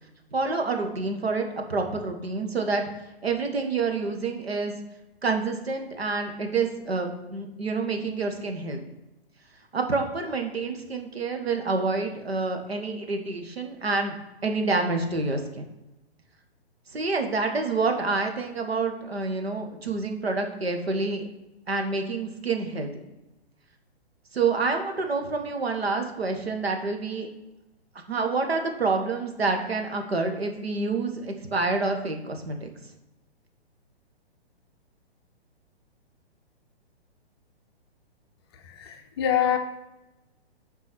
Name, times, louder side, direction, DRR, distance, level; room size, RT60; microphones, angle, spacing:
voice 1, 0.3-2.8 3.2-4.7 5.2-8.8 9.7-14.1 14.4-15.7 16.9-21.3 21.7-22.9 24.3-27.3 28.1-32.7, right 3 dB, 70° right, 4 dB, 1.6 m, -28 dB
voice 2, 38.6-39.6, left 10 dB, 25° left, 5 dB, 0.6 m, -25 dB
7.5 x 4.6 x 6.0 m, 0.99 s
figure-of-eight pair, 120°, 32 cm